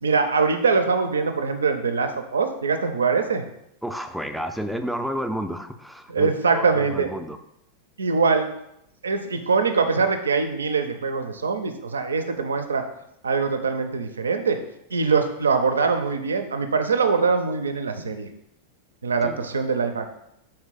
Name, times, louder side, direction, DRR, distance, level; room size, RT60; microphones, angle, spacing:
voice 1, 0.0-3.4 6.1-7.1 8.0-8.5 9.0-12.8 13.2-14.6 14.9-18.3 19.0-20.1, right 5 dB, 70° right, 8 dB, 0.4 m, -23 dB
voice 2, 3.8-7.4 19.2-19.5, equal, ahead, 7 dB, 0.3 m, -31 dB
4.4 x 3.2 x 3.7 m, 0.81 s
figure-of-eight pair, 90°, 0 cm